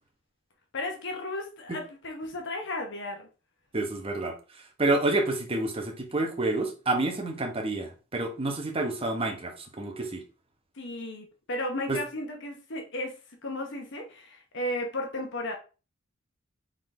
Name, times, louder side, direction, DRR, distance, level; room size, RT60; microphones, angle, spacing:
voice 1, 0.7-3.3 10.8-13.2 13.4-15.5, left 1 dB, 60° left, 0.9 m, -34 dB
voice 2, 3.7-4.3 4.8-10.2 11.9-12.0, right 2 dB, 30° right, 1.0 m, -28 dB
3.9 x 3.8 x 3.3 m
head